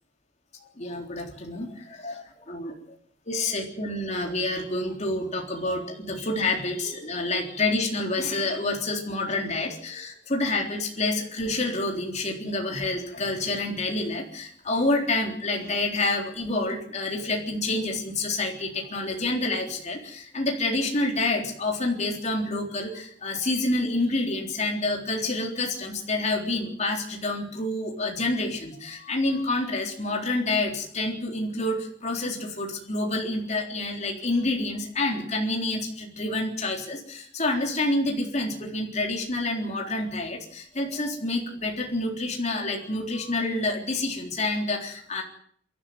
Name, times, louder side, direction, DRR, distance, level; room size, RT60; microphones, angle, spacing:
voice 1, 0.8-2.7 3.3-45.2, left 2 dB, 35° left, 1 dB, 3.8 m, -28 dB
26.5 x 12.0 x 9.4 m, 0.64 s
head